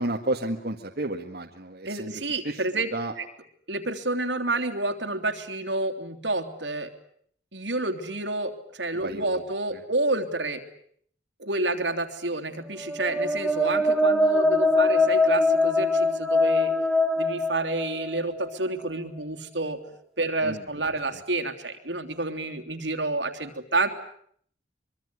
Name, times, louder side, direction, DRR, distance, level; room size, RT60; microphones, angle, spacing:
voice 1, 0.0-2.1 2.4-2.6 2.9-3.1 9.0-9.4 9.7-9.8 20.4-20.6, right 1 dB, 55° right, 1 dB, 1.9 m, -31 dB
voice 2, 1.8-2.9 3.2-3.3 3.7-6.9 7.5-10.6 11.4-16.7 17.2-19.8 20.2-23.9, right 2 dB, 70° right, 7 dB, 3.1 m, -29 dB
sound 1, 12.8-18.5, left 2 dB, ahead, 2.0 m, -23 dB
24.5 x 24.0 x 9.8 m, 0.64 s
head